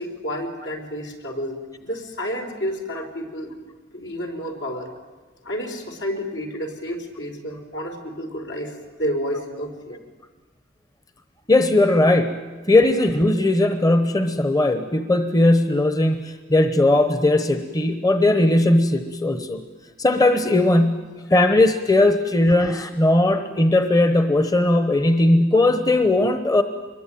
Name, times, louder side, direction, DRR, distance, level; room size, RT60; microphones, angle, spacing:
voice 1, 0.0-3.5 3.9-4.9 5.4-10.0, equal, 75° left, 2 dB, 4.4 m, -30 dB
voice 2, 11.5-19.6 20.0-26.6, left 2 dB, 20° left, 8 dB, 1.0 m, -18 dB
25.5 x 22.0 x 9.2 m, 1.3 s
head